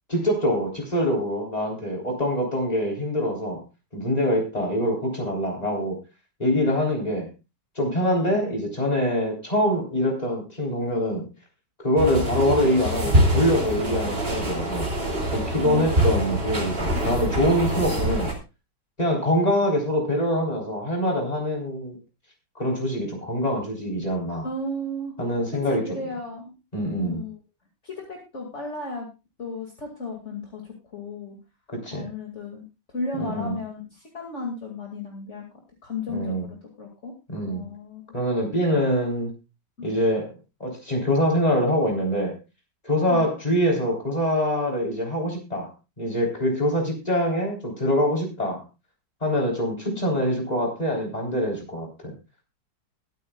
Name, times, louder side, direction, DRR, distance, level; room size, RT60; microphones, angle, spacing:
voice 1, 0.1-3.6 3.9-6.0 6.4-7.3 7.8-11.3 11.8-14.9 15.3-18.3 19.0-22.0 22.6-24.5 25.2-25.8 26.7-27.2 31.7-32.1 33.2-33.6 36.1-36.5 37.3-37.7 38.1-39.3 39.8-42.3 42.8-45.7 46.0-48.6 49.2-52.1, equal, 20° left, 0 dB, 3.8 m, -24 dB
sound 1, 12.0-18.3, right 1 dB, 35° right, 2.9 m, -24 dB
voice 2, 24.4-25.1 25.5-26.6 27.0-27.4 27.8-29.1 29.4-31.4 31.9-35.4 35.8-37.1 37.4-38.0 39.8-40.0 43.1-43.2 49.9-50.0, left 2 dB, 40° left, 0 dB, 2.5 m, -34 dB
22.0 x 9.0 x 2.3 m, 0.28 s
omnidirectional pair, 1.8 m